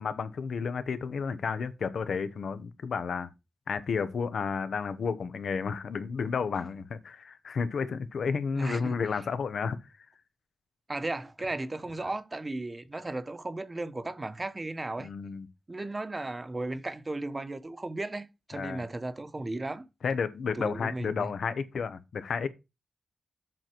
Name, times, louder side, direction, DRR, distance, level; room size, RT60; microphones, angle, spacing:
voice 1, 0.0-3.3 3.7-9.8 15.0-15.5 18.5-18.8 20.0-22.5, left 5 dB, 85° left, 0.9 m, -32 dB
voice 2, 8.5-9.2 10.9-15.1 15.7-19.9 20.5-21.3, right 2 dB, 30° right, 1.0 m, -35 dB
7.7 x 5.8 x 4.6 m
wide cardioid pair, 80°, 0 cm